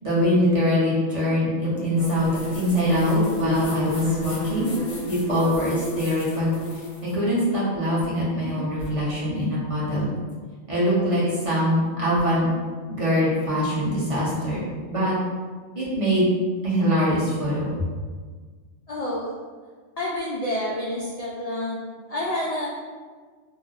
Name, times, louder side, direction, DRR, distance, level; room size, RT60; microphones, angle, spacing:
voice 1, 0.0-4.7 5.1-6.5 7.0-10.1 10.7-12.5 12.9-14.6 14.9-15.1 15.7-16.3 16.6-17.7, equal, 35° right, -8 dB, 0.8 m, -23 dB
sound 1, 2.0-7.1, equal, 50° left, 0.7 m, -30 dB
voice 2, 18.9-19.3 20.0-21.8 22.1-22.7, left 1 dB, 80° left, -6 dB, 0.3 m, -28 dB
2.6 x 2.1 x 3.8 m, 1.5 s
omnidirectional pair, 1.2 m